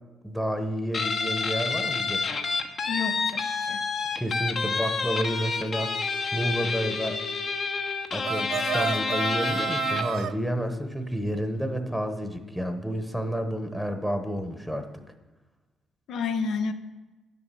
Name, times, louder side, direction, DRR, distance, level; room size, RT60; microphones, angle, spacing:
voice 1, 0.2-2.3 4.2-6.1 6.3-7.2 8.1-14.9, equal, ahead, 7 dB, 1.0 m, -30 dB
Guitar, 0.9-10.2, left 4 dB, 50° left, 1.1 m, -29 dB
voice 2, 2.9-3.8 16.1-16.7, left 5 dB, 75° left, 9 dB, 0.9 m, -30 dB
sound 1, 8.2-10.3, right 10 dB, 70° right, 0.4 m, -30 dB
10.0 x 7.2 x 6.8 m, 1.2 s
cardioid pair, 90°, 0 cm